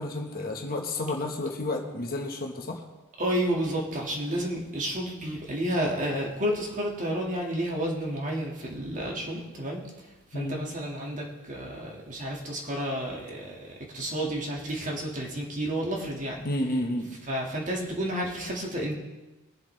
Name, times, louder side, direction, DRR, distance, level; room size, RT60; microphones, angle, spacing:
voice 1, 0.0-2.8 10.3-10.6 16.4-17.2, left 1 dB, 40° left, 2 dB, 1.4 m, -31 dB
voice 2, 3.2-9.9 10.3-16.5 17.3-18.9, equal, 35° right, -1 dB, 2.0 m, -31 dB
22.0 x 7.4 x 3.4 m, 1.1 s
head